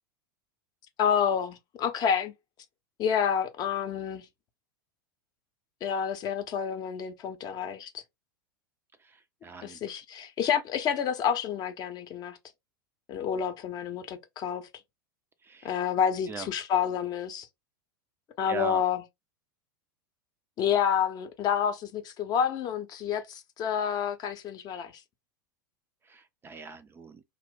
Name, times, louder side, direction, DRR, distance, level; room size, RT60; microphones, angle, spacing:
voice 1, 1.0-2.3 3.0-4.2 5.8-8.0 9.6-12.4 13.1-14.7 15.6-17.5 18.4-19.0 20.6-25.0, left 8 dB, 35° left, 0.6 m, -29 dB
voice 2, 9.4-9.8 15.4-15.7 16.3-16.5 18.5-18.8 26.1-27.2, right 5 dB, 20° right, 0.3 m, -40 dB
2.5 x 2.0 x 3.6 m
hypercardioid pair, 90°, 12 cm